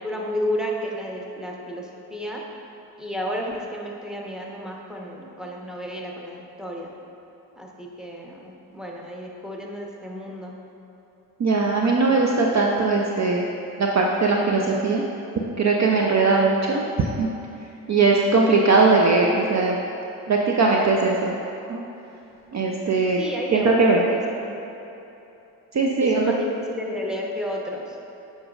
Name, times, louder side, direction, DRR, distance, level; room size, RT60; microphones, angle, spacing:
voice 1, 0.0-2.4 3.0-6.9 7.6-10.5 23.2-24.5 26.0-27.8, equal, ahead, -2 dB, 1.0 m, -32 dB
voice 2, 11.4-13.4 13.8-15.0 15.6-17.3 17.9-19.8 20.3-21.4 21.7-21.8 22.5-23.2 23.5-24.0 25.7-26.2, right 3 dB, 35° right, -1 dB, 0.6 m, -20 dB
8.5 x 5.2 x 2.5 m, 3.0 s
hypercardioid pair, 45°, 48 cm